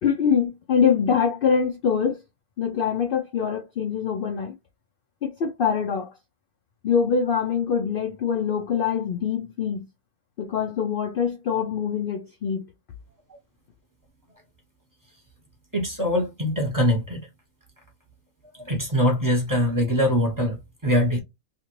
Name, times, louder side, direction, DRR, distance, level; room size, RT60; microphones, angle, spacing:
voice 1, 0.0-2.2 2.6-4.5 5.2-6.1 6.8-9.9 10.4-12.6, left 7 dB, 75° left, 0.5 m, -24 dB
voice 2, 15.7-17.3 18.5-21.2, equal, 15° right, 0.8 m, -23 dB
2.7 x 2.5 x 2.9 m
omnidirectional pair, 1.5 m